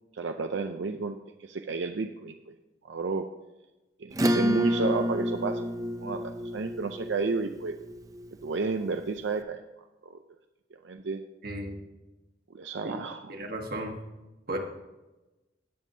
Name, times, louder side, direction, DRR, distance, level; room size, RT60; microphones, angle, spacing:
voice 1, 0.1-2.5 2.8-3.3 4.0-5.7 6.0-7.7 8.4-9.6 10.0-10.2 10.8-11.2 12.5-13.3, right 4 dB, 80° right, 6 dB, 0.5 m, -32 dB
Acoustic guitar / Strum, 4.1-9.1, equal, 20° right, 0.5 m, -30 dB
voice 2, 11.4-11.8 12.8-13.9 14.5-14.6, right 1 dB, 55° right, 3 dB, 1.5 m, -35 dB
17.0 x 7.3 x 2.8 m, 1.1 s
head